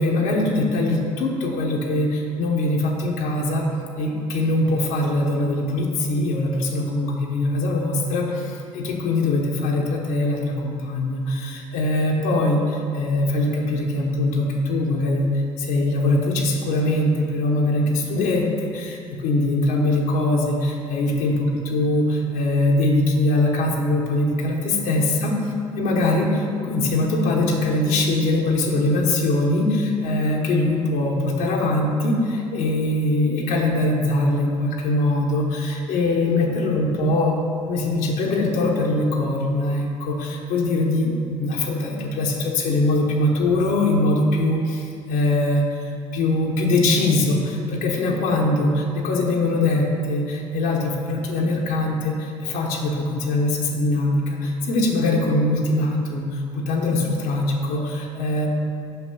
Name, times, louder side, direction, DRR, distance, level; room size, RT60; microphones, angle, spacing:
voice 1, 0.0-3.7 4.0-21.4 21.7-25.3 25.8-37.4 37.7-58.5, left 2 dB, 75° left, -1 dB, 1.0 m, -22 dB
5.8 x 5.4 x 5.4 m, 2.5 s
supercardioid pair, 70°, 15 cm